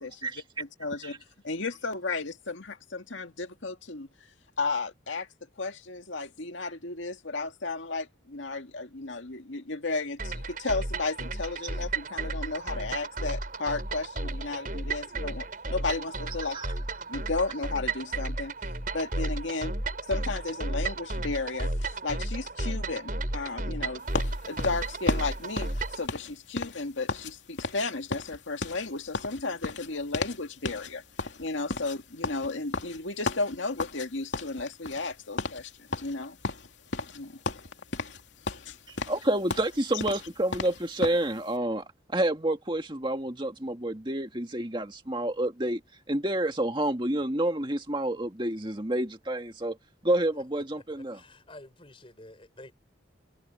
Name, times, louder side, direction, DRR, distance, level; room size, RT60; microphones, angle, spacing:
voice 1, 0.6-1.2 1.4-4.1 4.6-5.3 5.6-16.6 17.1-18.5 18.9-19.7 20.1-24.0 24.5-31.0 31.4-36.4 37.1-37.4 38.7-38.8, left 3 dB, 90° left, 2.0 m, -34 dB
sound 1, 10.2-26.1, right 2 dB, 45° right, 5.2 m, -33 dB
sound 2, 24.1-27.3 27.6-27.9 28.1-30.4 30.7-30.9 31.2-34.1 34.3-35.1 35.4-35.6 35.9-37.2 37.5-38.2 38.5-41.2, left 3 dB, 75° left, 2.7 m, -34 dB
voice 2, 38.9-45.8 46.1-49.8 50.0-51.2, right 1 dB, 25° right, 2.1 m, -29 dB
voice 3, 51.0-52.7, left 1 dB, 30° left, 4.9 m, -49 dB
head